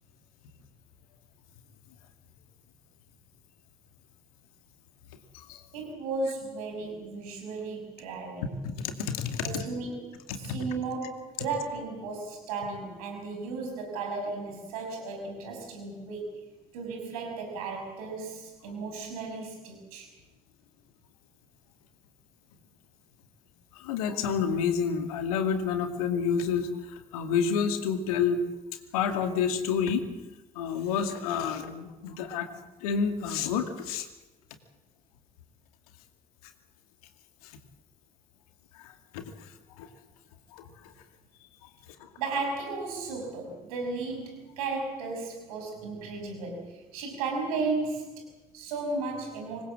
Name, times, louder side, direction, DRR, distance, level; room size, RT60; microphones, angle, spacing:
voice 1, 5.7-8.5 9.4-16.4 16.7-20.1 42.2-49.6, right 3 dB, 75° right, 3 dB, 6.4 m, -35 dB
voice 2, 8.6-9.6 10.3-10.6 23.7-28.4 28.9-30.1 30.5-32.5 32.8-34.1 37.4-37.6 38.7-39.9 40.5-40.9 41.6-41.7 42.0-42.1, left 6 dB, 75° left, 7 dB, 2.4 m, -29 dB
26.0 x 21.0 x 7.6 m, 1.1 s
figure-of-eight pair, 40°, 19 cm